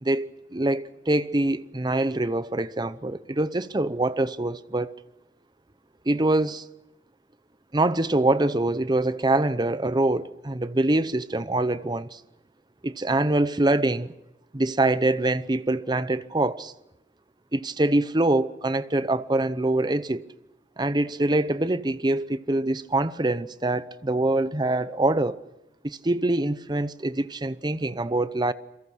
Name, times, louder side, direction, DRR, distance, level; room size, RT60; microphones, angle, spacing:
voice 1, 0.0-4.9 6.1-6.6 7.7-12.2 12.8-14.1 14.5-16.7 17.5-20.2 20.8-25.4 25.8-28.5, right 2 dB, 25° right, 0.8 m, -24 dB
28.5 x 23.0 x 6.3 m
head